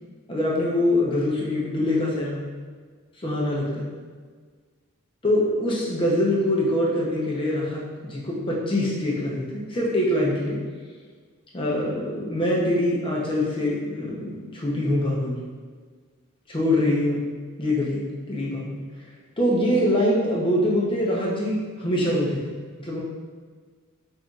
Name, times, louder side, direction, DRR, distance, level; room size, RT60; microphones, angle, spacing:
voice 1, 0.3-2.4 3.2-3.9 5.2-10.6 11.5-15.4 16.5-17.2 17.6-18.8 19.4-23.0, left 1 dB, 25° left, -4 dB, 0.7 m, -24 dB
5.4 x 2.6 x 2.3 m, 1.5 s
head